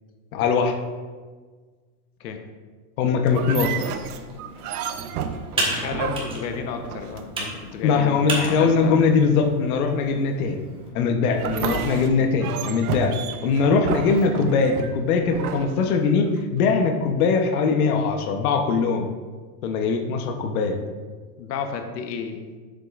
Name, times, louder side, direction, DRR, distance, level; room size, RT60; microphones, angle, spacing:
voice 1, 0.3-0.7 3.0-3.8 7.8-10.6 10.9-13.1 13.4-19.1 19.6-20.8, left 5 dB, 60° left, 4 dB, 1.0 m, -21 dB
sound 1, 3.3-7.6 11.3-16.4, right 7 dB, 65° right, 0.8 m, -32 dB
Computer keyboard, 4.1-10.9, right 2 dB, 10° right, 1.4 m, -33 dB
voice 2, 5.5-9.2 21.4-22.4, left 6 dB, 90° left, 5 dB, 1.1 m, -32 dB
10.0 x 7.5 x 2.5 m, 1.4 s
supercardioid pair, 160°, 49 cm